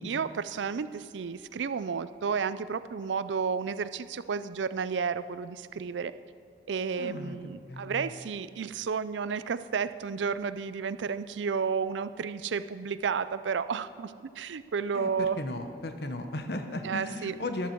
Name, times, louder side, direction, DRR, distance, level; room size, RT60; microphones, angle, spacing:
voice 1, 0.0-6.1 6.7-15.4 16.8-17.3, right 6 dB, 85° right, 14 dB, 0.4 m, -32 dB
voice 2, 7.0-8.1 14.9-17.7, left 1 dB, 60° left, 6 dB, 1.1 m, -36 dB
14.0 x 12.0 x 4.6 m, 2.3 s
head